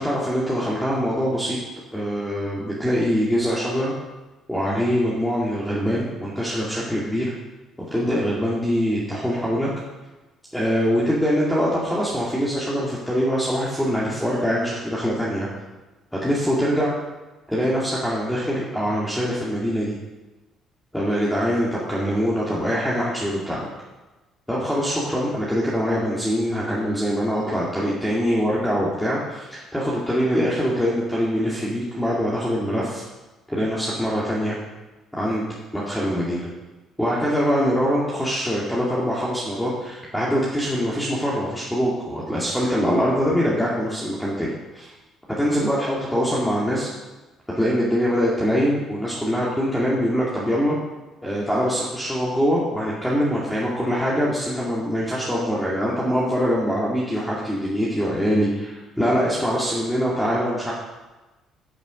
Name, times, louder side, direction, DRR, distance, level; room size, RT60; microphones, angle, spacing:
voice 1, 0.0-1.6 1.9-3.9 4.5-7.3 7.9-9.7 10.5-15.5 16.1-16.9 17.5-20.0 20.9-23.7 24.5-33.0 33.5-34.6 35.1-35.5 35.7-36.5 37.0-44.9 45.4-46.9 47.5-50.8 51.2-60.7, equal, 5° left, -7 dB, 2.3 m, -23 dB
14.0 x 7.2 x 5.2 m, 1.1 s
cardioid pair, 130°, 0 cm